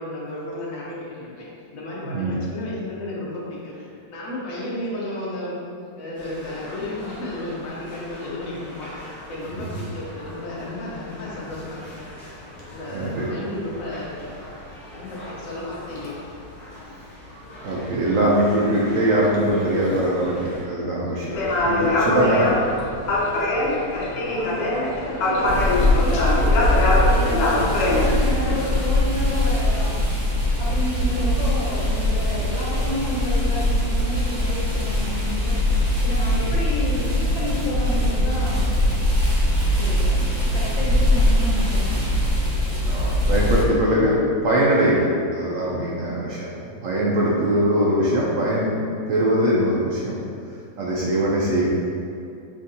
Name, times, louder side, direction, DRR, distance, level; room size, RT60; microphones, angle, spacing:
voice 1, 0.0-3.7 4.1-5.6 6.0-12.1 12.7-14.3 14.9-16.1, left 1 dB, 55° left, -6 dB, 1.1 m, -33 dB
voice 2, 2.0-2.4 9.6-9.7 12.9-13.3 17.6-21.3 21.6-22.5 42.9-44.2 44.4-45.1 45.3-46.5 46.8-48.8 49.1-50.2 50.8-51.7, right 1 dB, 75° right, -5 dB, 0.7 m, -21 dB
sound 1, 6.1-20.6, equal, 25° left, 1.1 m, -41 dB
sound 2, 21.3-28.9, left 1 dB, 75° left, 1.3 m, -23 dB
voice 3, 24.1-30.0 30.6-35.6 36.0-38.7 39.8-42.0 45.7-45.9 47.3-47.5, left 1 dB, 90° left, -7 dB, 1.6 m, -30 dB
sound 3, 25.4-43.6, left 1 dB, 35° right, 0.7 m, -21 dB
6.2 x 2.6 x 2.7 m, 2.5 s
omnidirectional pair, 2.0 m